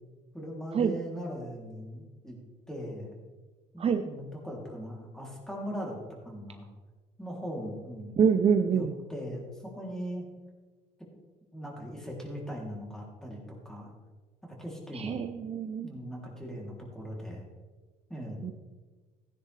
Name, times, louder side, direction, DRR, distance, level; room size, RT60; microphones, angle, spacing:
voice 1, 0.3-2.4 2.7-3.1 3.7-6.0 6.2-6.7 7.2-8.2 8.7-10.3 11.5-13.9 14.6-15.2 15.8-17.4 18.1-18.5, equal, 5° left, -2 dB, 3.1 m, -39 dB
voice 2, 8.2-8.9 14.9-15.9 18.4-18.5, right 6 dB, 35° right, 7 dB, 0.6 m, -26 dB
15.0 x 10.0 x 3.4 m, 1.3 s
cardioid pair, 110°, 17 cm